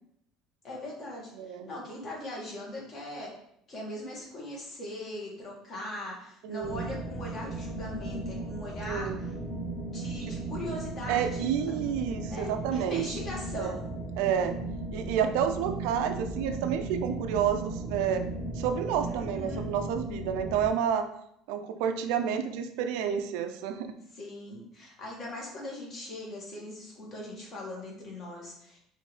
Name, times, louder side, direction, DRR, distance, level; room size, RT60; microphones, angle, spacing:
voice 1, 0.6-3.3 3.7-9.6 9.9-11.5 12.2-13.9 19.0-19.7 24.1-28.8, left 1 dB, 40° left, -3 dB, 1.7 m, -40 dB
voice 2, 1.4-1.7 6.4-6.9 8.9-9.3 10.3-10.4 11.1-13.2 13.5-13.7 14.2-14.6 14.9-18.2 18.6-21.1 21.5-24.0, right 8 dB, 80° right, 8 dB, 0.4 m, -30 dB
sound 1, 6.6-20.7, right 2 dB, 5° right, 1.3 m, -36 dB
5.4 x 2.7 x 3.2 m, 0.73 s
cardioid pair, 120°, 0 cm